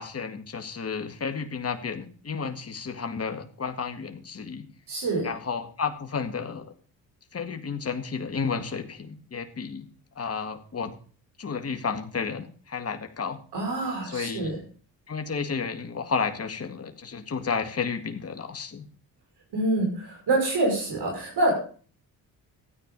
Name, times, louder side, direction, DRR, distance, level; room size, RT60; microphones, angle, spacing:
voice 1, 0.0-4.7 5.2-6.7 7.3-9.9 10.2-11.0 11.4-13.4 14.0-14.5 15.1-18.9, left 5 dB, 35° left, 6 dB, 1.9 m, -32 dB
voice 2, 4.9-5.3 13.5-14.5 19.5-21.5, right 2 dB, 65° right, 2 dB, 5.7 m, -26 dB
13.0 x 9.3 x 5.4 m, 0.42 s
supercardioid pair, 60°, 42 cm